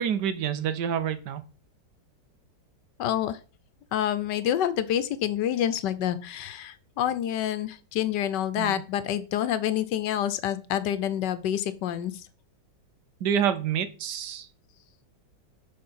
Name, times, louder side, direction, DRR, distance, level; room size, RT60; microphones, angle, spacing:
voice 1, 0.0-1.4 8.6-8.8 13.2-14.5, right 8 dB, 70° right, 12 dB, 1.4 m, -27 dB
voice 2, 3.0-3.4 3.9-12.1, left 10 dB, 75° left, 13 dB, 1.3 m, -27 dB
6.6 x 4.4 x 5.5 m, 0.35 s
omnidirectional pair, 1.9 m